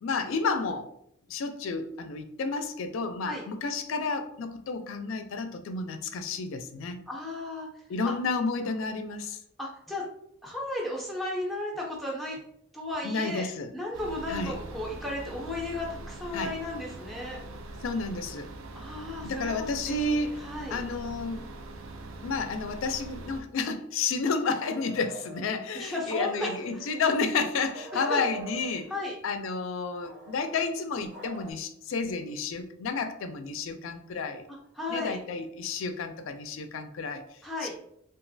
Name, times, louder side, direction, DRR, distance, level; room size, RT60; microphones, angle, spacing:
voice 1, 0.0-0.9 1.3-7.0 7.9-9.4 13.0-13.7 14.3-14.6 16.3-16.5 17.8-18.5 19.2-21.4 22.2-28.9 29.2-34.5 34.9-37.2 37.6-37.8, left 4 dB, 70° left, 8 dB, 0.4 m, -31 dB
voice 2, 7.1-8.1 9.6-10.0 10.4-12.4 12.7-17.4 18.7-20.8 25.7-26.8 27.9-28.2 28.9-29.2 34.7-35.2 37.4-37.7, left 2 dB, ahead, -3 dB, 0.4 m, -35 dB
sound 1, 13.9-23.4, right 2 dB, 75° right, 0.4 m, -42 dB
sound 2, 24.5-25.5 26.1-27.0 27.6-28.9 30.0-31.5, right 3 dB, 55° right, 0.8 m, -44 dB
3.0 x 2.4 x 2.5 m, 0.72 s
head